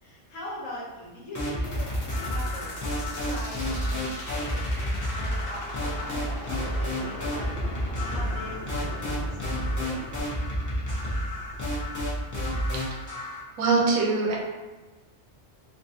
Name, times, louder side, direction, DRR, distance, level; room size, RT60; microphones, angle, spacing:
voice 1, 0.0-2.7 3.2-7.5 8.0-10.1, left 1 dB, 80° left, -4 dB, 1.1 m, -42 dB
sound 1, 1.3-13.4, equal, 25° left, 0.4 m, -30 dB
sound 2, 1.6-11.7, left 1 dB, 55° left, 0.8 m, -40 dB
voice 2, 13.6-14.4, right 3 dB, 90° right, -1 dB, 1.0 m, -23 dB
2.5 x 2.3 x 2.6 m, 1.2 s
omnidirectional pair, 1.3 m